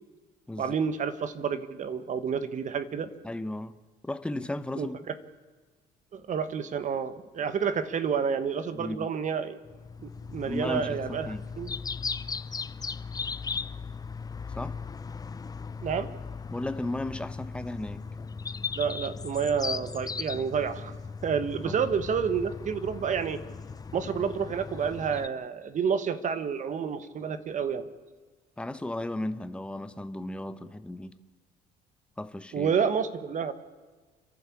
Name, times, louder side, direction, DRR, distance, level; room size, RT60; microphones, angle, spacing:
voice 1, 0.6-3.1 4.7-5.1 6.1-9.5 10.0-11.7 15.8-16.1 18.8-21.0 21.2-23.4 23.9-27.9 32.5-33.5, right 6 dB, 45° right, 1.5 m, -29 dB
voice 2, 3.2-3.8 4.0-5.0 8.7-9.1 10.5-11.4 14.5-14.8 16.5-18.0 21.6-21.8 28.6-31.2 32.2-32.7, left 1 dB, 5° left, 1.1 m, -35 dB
sound 1, 9.6-25.3, left 5 dB, 20° left, 0.6 m, -37 dB
30.0 x 11.5 x 8.6 m
cardioid pair, 110°, 17 cm